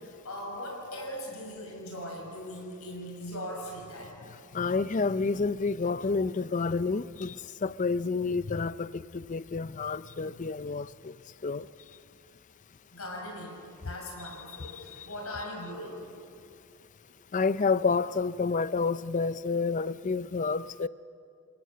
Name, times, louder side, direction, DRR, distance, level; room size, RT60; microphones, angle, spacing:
voice 1, 0.0-4.2 12.9-13.6 13.8-16.1, left 1 dB, 75° left, 0 dB, 6.1 m, -39 dB
voice 2, 4.5-7.4 7.6-11.1 11.4-11.7 14.7-15.1 17.3-20.9, left 4 dB, 35° left, 17 dB, 0.4 m, -29 dB
29.0 x 17.5 x 7.6 m, 2.6 s
head